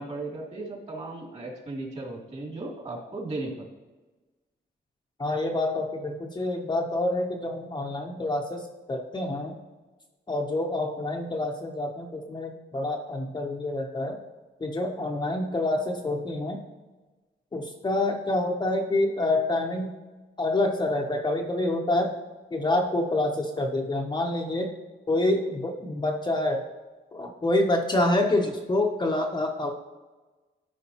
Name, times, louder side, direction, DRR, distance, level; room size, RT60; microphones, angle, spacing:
voice 1, 0.0-3.7, right 2 dB, 35° right, -2 dB, 2.4 m, -36 dB
voice 2, 5.2-9.6 10.3-14.2 14.6-16.6 17.5-19.9 20.4-22.1 22.5-24.7 25.1-26.6 27.1-29.7, left 2 dB, 25° left, 1 dB, 0.7 m, -27 dB
13.0 x 5.0 x 2.8 m, 1.2 s
wide cardioid pair, 135°, 18 cm